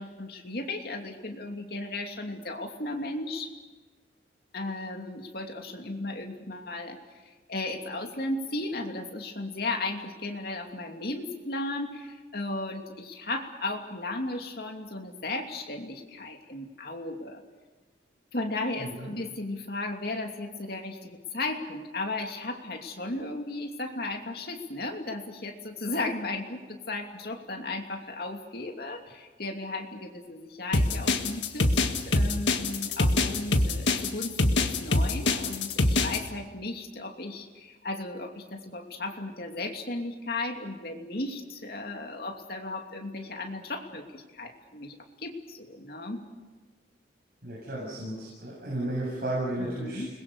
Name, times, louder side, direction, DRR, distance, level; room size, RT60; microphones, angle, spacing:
voice 1, 0.0-3.5 4.5-7.0 7.5-17.4 18.3-46.2 49.6-50.1, left 2 dB, 55° left, 3 dB, 2.8 m, -35 dB
voice 2, 18.8-19.1 47.4-50.0, right 1 dB, 55° right, -4 dB, 7.5 m, -33 dB
sound 1, 30.7-36.2, left 2 dB, 80° left, 1.8 m, -24 dB
29.5 x 21.5 x 6.8 m, 1.3 s
head